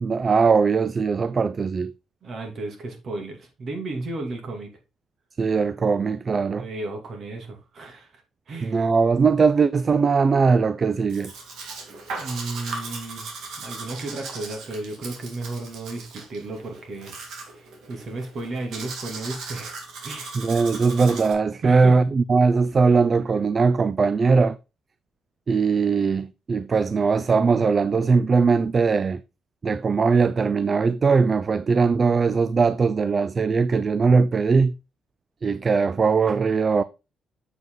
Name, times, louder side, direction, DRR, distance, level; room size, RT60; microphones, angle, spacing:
voice 1, 0.0-1.9 5.4-6.7 8.6-11.3 20.3-24.6 25.5-29.2 29.6-34.7 35.4-36.8, right 4 dB, 40° right, 0.4 m, -20 dB
voice 2, 2.2-4.7 6.6-8.8 12.2-13.3 13.6-17.1 17.5-19.8 20.0-20.4 21.6-22.1, right 2 dB, 55° right, 2.6 m, -34 dB
Domestic sounds home sounds, 11.1-21.3, right 4 dB, 80° right, 2.3 m, -38 dB
7.6 x 5.2 x 3.9 m
cardioid pair, 90°, 0 cm